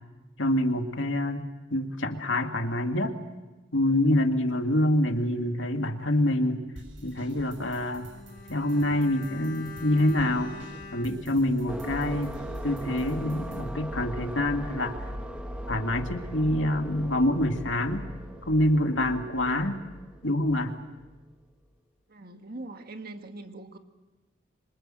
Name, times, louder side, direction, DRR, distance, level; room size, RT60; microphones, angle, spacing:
voice 1, 0.4-1.4 1.7-3.2 3.7-6.6 7.0-8.1 8.5-10.5 10.9-12.3 12.6-15.0 15.7-18.1 18.5-19.8 20.2-20.8, left 1 dB, 75° left, 5 dB, 2.3 m, -26 dB
sound 1, 6.8-13.6, right 1 dB, 80° right, 6.3 m, -48 dB
Bowed string instrument, 8.1-12.5 12.8-12.9, left 4 dB, 45° left, 1.5 m, -45 dB
sound 2, 11.7-21.2, equal, 5° right, 1.7 m, -38 dB
voice 2, 22.1-23.8, right 2 dB, 50° right, 6 dB, 1.8 m, -42 dB
25.5 x 25.5 x 7.7 m, 1.1 s
head